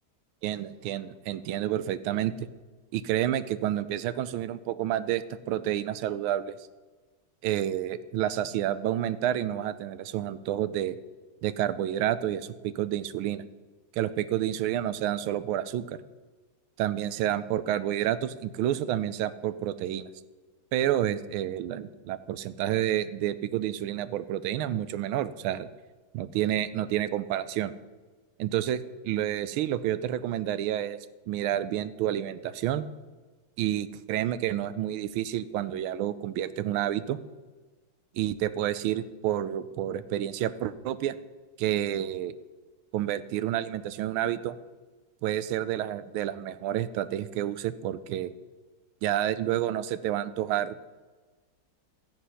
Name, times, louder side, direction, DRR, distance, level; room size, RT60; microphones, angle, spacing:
voice 1, 0.4-2.5 2.9-6.5 7.4-11.0 11.4-13.4 14.0-16.0 16.8-20.1 20.7-25.7 26.1-27.7 28.4-31.0 31.3-32.8 33.6-37.2 38.1-41.1 41.6-42.3 42.9-44.6 45.2-48.3 49.0-50.8, right 12 dB, 85° right, 14 dB, 1.4 m, -29 dB
13.0 x 9.2 x 5.6 m, 1.3 s
omnidirectional pair, 2.2 m